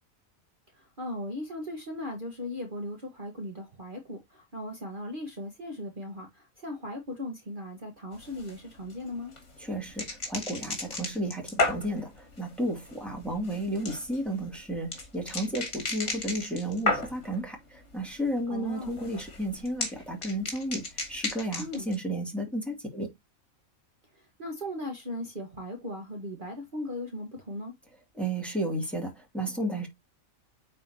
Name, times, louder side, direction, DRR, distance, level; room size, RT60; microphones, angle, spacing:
voice 1, 0.7-9.3 18.5-18.9 21.6-21.9 24.1-27.7, left 1 dB, 40° right, 1.6 m, -38 dB
sound 1, 8.1-17.4 17.7-18.3 18.6-22.0, left 3 dB, 55° left, 2.7 m, -34 dB
voice 2, 9.6-23.1 28.1-29.9, right 1 dB, ahead, 2.5 m, -33 dB
9.1 x 4.3 x 2.8 m
omnidirectional pair, 1.4 m